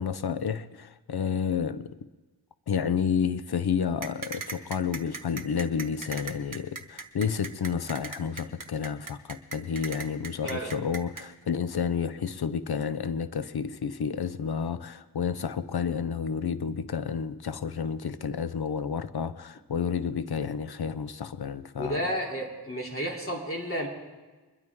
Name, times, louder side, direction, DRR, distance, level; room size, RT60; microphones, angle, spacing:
voice 1, 0.0-2.0 2.7-22.0, left 7 dB, 70° left, 0.6 m, -30 dB
sound 1, 4.0-11.2, right 4 dB, 55° right, 1.0 m, -38 dB
voice 2, 10.4-10.7 21.8-23.9, equal, 35° left, 2.9 m, -32 dB
22.0 x 12.0 x 3.6 m
wide cardioid pair, 50°, 39 cm